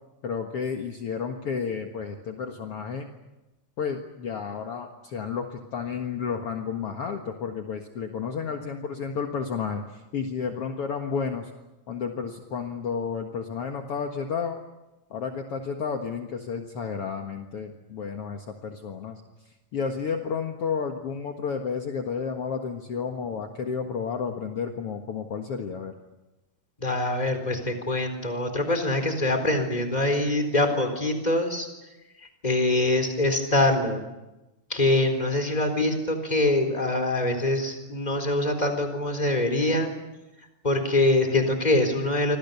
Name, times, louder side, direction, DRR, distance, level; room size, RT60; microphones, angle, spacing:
voice 1, 0.2-3.1 3.8-11.5 11.9-14.6 15.1-19.2 19.7-25.9, left 6 dB, 55° left, 3 dB, 2.4 m, -31 dB
voice 2, 26.8-31.7 32.4-34.1 34.7-39.9 40.6-42.4, left 2 dB, 15° left, 6 dB, 4.0 m, -24 dB
28.0 x 25.5 x 7.0 m, 1.0 s
omnidirectional pair, 3.3 m